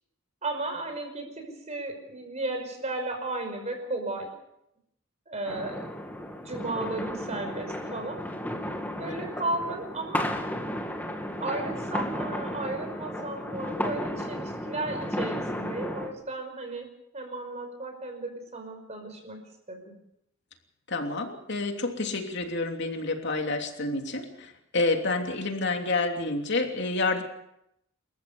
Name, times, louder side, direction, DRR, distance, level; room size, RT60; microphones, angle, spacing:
voice 1, 0.4-4.3 5.3-5.9 6.4-8.2 9.0-10.3 11.4-16.9 17.1-19.4 19.7-19.9, right 2 dB, 35° right, 5 dB, 5.4 m, -34 dB
sound 1, 5.5-16.1, left 1 dB, 10° left, 2.1 m, -33 dB
voice 2, 20.9-27.2, left 3 dB, 60° left, 3 dB, 3.1 m, -29 dB
28.5 x 14.5 x 7.0 m, 0.80 s
head